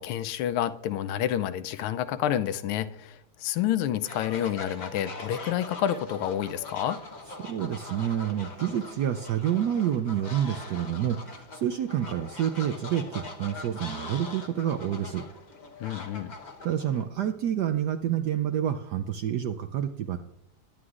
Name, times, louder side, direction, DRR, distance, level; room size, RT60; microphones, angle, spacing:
voice 1, 0.0-7.0 15.8-16.3, left 11 dB, 85° left, 12 dB, 1.5 m, -29 dB
Fowl, 4.0-17.0, left 3 dB, 45° left, 0.5 m, -42 dB
voice 2, 7.4-15.2 16.6-20.2, right 10 dB, 75° right, 8 dB, 0.9 m, -28 dB
21.5 x 9.5 x 2.4 m, 0.82 s
omnidirectional pair, 2.3 m